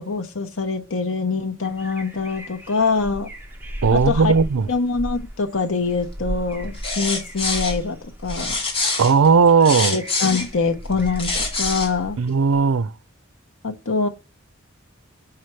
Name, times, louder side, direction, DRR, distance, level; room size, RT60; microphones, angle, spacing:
voice 1, 0.0-3.3 3.9-4.3 4.7-8.0 8.2-8.6 9.9-12.2 13.6-14.1, left 4 dB, 75° left, 1.0 m, -24 dB
sound 1, 1.6-12.5, equal, 10° right, 1.4 m, -35 dB
voice 2, 3.8-4.7 9.0-10.0 12.2-12.9, right 5 dB, 85° right, 0.5 m, -16 dB
sound 2, 6.7-7.8 8.3-10.5 11.0-11.9, left 3 dB, 30° left, 2.2 m, -25 dB
5.8 x 5.5 x 3.2 m
head